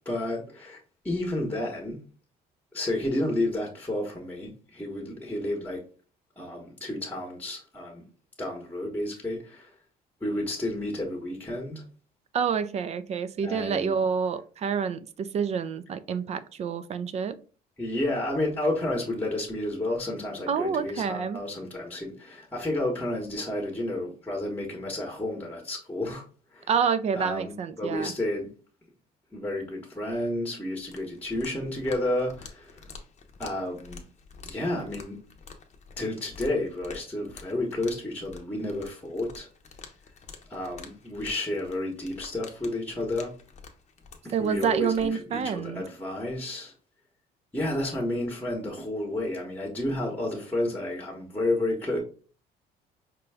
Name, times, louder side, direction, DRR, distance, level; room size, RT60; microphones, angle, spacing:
voice 1, 0.0-0.8 1.0-2.0 2.7-5.8 6.4-8.0 8.4-9.7 10.2-11.8 13.4-14.0 17.8-26.2 26.5-26.7 27.1-28.5 29.3-32.9 33.4-34.0 34.4-35.2 36.0-39.5 40.5-43.3 44.2-46.7 47.5-52.0, left 1 dB, 10° left, 0.9 m, -31 dB
voice 2, 12.3-17.4 20.5-21.4 26.7-28.1 44.3-45.8, right 6 dB, 40° right, 0.4 m, -28 dB
sound 1, 30.8-45.1, left 5 dB, 40° left, 0.7 m, -48 dB
5.0 x 2.2 x 3.3 m
cardioid pair, 110°, 17 cm